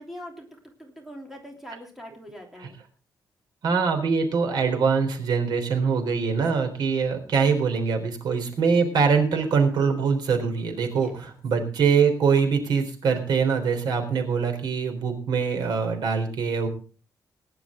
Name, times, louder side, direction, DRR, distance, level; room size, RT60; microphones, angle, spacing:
voice 1, 0.0-2.8 7.1-7.3 10.9-11.1, equal, 5° right, 1 dB, 3.1 m, -43 dB
voice 2, 3.6-16.7, right 5 dB, 75° right, 6 dB, 3.7 m, -23 dB
20.0 x 10.5 x 3.7 m, 0.38 s
wide cardioid pair, 165°, 7 cm